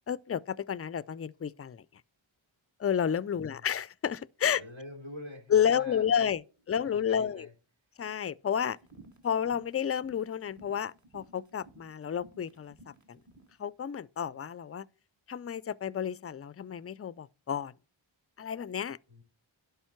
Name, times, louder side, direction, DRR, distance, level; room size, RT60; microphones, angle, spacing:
voice 1, 0.1-1.8 2.8-4.6 5.5-6.4 6.7-7.5 8.0-8.8 9.2-12.8 13.1-13.2 13.6-14.8 15.3-17.7 18.4-19.0, left 8 dB, 35° left, 0.4 m, -31 dB
voice 2, 3.3-3.7 4.5-6.3 6.8-7.5 19.1-19.2, left 1 dB, 70° right, 3.6 m, -47 dB
sound 1, 8.7-13.6, right 2 dB, 35° right, 1.7 m, -56 dB
11.5 x 5.4 x 4.4 m
wide cardioid pair, 45°, 49 cm